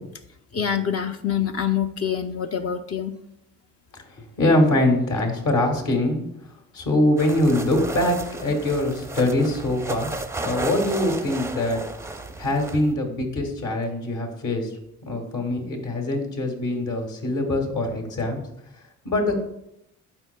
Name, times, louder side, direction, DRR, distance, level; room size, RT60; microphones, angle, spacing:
voice 1, 0.5-3.2, left 8 dB, 40° left, 7 dB, 0.5 m, -25 dB
voice 2, 3.9-6.2 6.7-10.1 10.4-11.8 12.4-14.7 15.1-18.4 19.0-19.5, left 1 dB, 60° left, 2 dB, 1.9 m, -23 dB
sound 1, 7.2-12.9, right 2 dB, 10° right, 0.5 m, -34 dB
11.5 x 4.6 x 2.2 m, 0.82 s
supercardioid pair, 65°, 35 cm